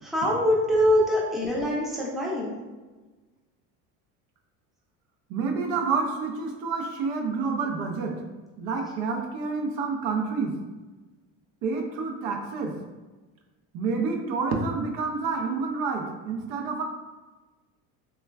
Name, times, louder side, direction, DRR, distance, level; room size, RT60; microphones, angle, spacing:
voice 1, 0.0-2.5, equal, ahead, -5 dB, 0.6 m, -23 dB
voice 2, 5.3-8.2 8.6-10.5 11.6-12.7 13.7-16.8, right 4 dB, 70° right, 2 dB, 0.5 m, -28 dB
3.0 x 2.2 x 2.2 m, 1.2 s
supercardioid pair, 105°, 37 cm